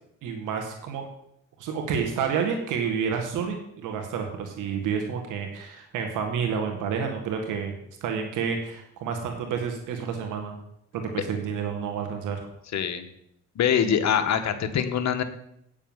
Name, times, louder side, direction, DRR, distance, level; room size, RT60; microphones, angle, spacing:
voice 1, 0.2-1.0 1.6-7.7 8.0-10.5 10.9-12.4, right 6 dB, 85° right, 4 dB, 1.9 m, -29 dB
voice 2, 12.7-13.1 13.5-15.2, left 8 dB, 65° left, 9 dB, 1.3 m, -24 dB
9.0 x 7.1 x 7.2 m, 0.74 s
cardioid pair, 90°, 30 cm